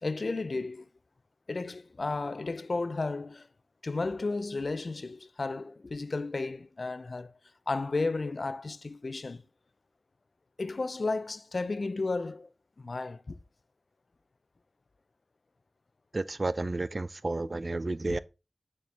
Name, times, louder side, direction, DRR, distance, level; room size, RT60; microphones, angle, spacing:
voice 1, 0.0-0.9 1.5-3.5 3.8-7.4 7.7-9.4 10.6-12.5 12.8-13.4 18.1-18.2, left 3 dB, 60° left, 0.4 m, -33 dB
voice 2, 16.1-18.2, right 2 dB, 45° right, 0.3 m, -31 dB
6.3 x 4.4 x 3.4 m
wide cardioid pair, 60°, 0 cm